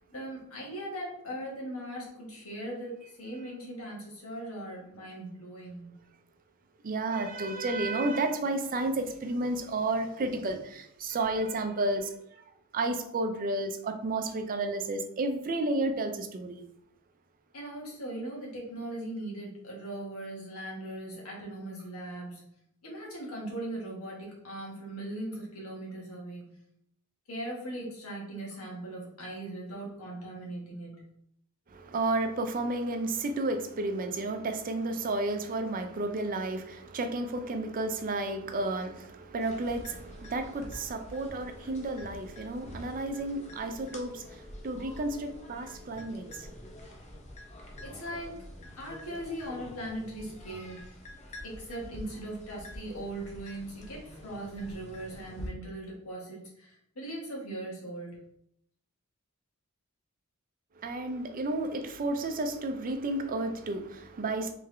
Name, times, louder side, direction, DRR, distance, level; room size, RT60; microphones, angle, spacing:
voice 1, 0.1-5.9 17.5-22.4 22.8-26.5 27.3-31.0 47.8-48.4 48.7-51.0 51.4-58.2, right 1 dB, 80° left, -3 dB, 1.5 m, -39 dB
voice 2, 6.8-12.1 12.7-16.6 31.7-46.5 60.8-64.5, right 2 dB, 40° right, 7 dB, 0.4 m, -32 dB
sound 1, 39.4-55.5, left 1 dB, 30° left, 0.7 m, -47 dB
3.6 x 3.4 x 3.3 m, 0.72 s
head